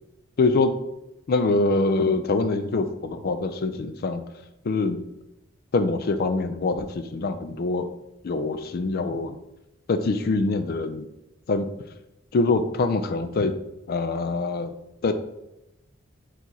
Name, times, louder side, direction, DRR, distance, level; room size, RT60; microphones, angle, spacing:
voice 1, 0.4-0.7 1.3-4.2 4.6-5.0 5.7-7.9 8.2-9.4 9.9-11.1 11.5-11.7 12.3-13.5 13.9-14.7 15.0-15.1, left 3 dB, 50° left, 10 dB, 0.4 m, -24 dB
4.6 x 4.0 x 2.9 m, 0.89 s
head